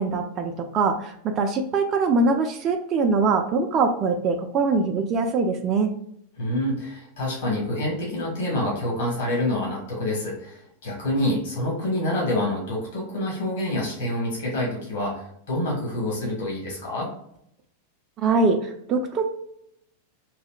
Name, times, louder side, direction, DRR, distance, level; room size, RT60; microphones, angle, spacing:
voice 1, 0.0-5.9 18.2-19.3, right 4 dB, 30° right, 4 dB, 0.4 m, -23 dB
voice 2, 6.4-17.1, left 1 dB, 55° left, -3 dB, 1.4 m, -27 dB
4.0 x 2.7 x 2.3 m, 0.71 s
figure-of-eight pair, 90°, 0 cm